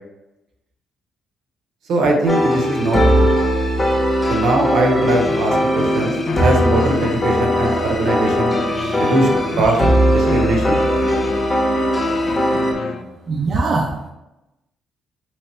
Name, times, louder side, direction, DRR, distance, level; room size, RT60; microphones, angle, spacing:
voice 1, 1.9-3.3 4.3-8.5 9.0-9.3 9.6-10.8, right 2 dB, 80° right, 1 dB, 0.8 m, -20 dB
sound 1, 2.3-12.7, equal, 25° left, 0.8 m, -19 dB
sound 2, 5.0-13.0, left 3 dB, 60° left, 0.4 m, -28 dB
voice 2, 8.8-9.1 13.3-14.1, right 3 dB, 50° right, 1 dB, 0.4 m, -22 dB
3.2 x 3.1 x 2.9 m, 0.92 s
cardioid pair, 90°, 0 cm